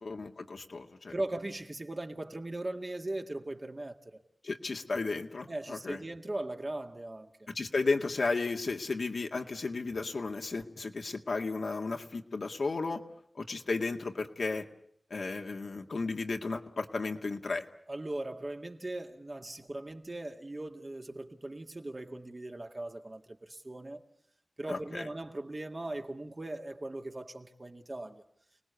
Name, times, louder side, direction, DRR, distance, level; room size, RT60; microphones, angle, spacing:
voice 1, 0.0-1.1 4.4-6.0 7.5-13.0 13.4-14.7 15.1-17.6 24.7-25.1, left 3 dB, 80° left, 2.0 m, -34 dB
voice 2, 1.1-4.2 5.5-7.3 17.9-24.0 24.6-28.2, right 2 dB, 40° right, 2.0 m, -39 dB
29.0 x 19.5 x 8.3 m
wide cardioid pair, 70°, 0 cm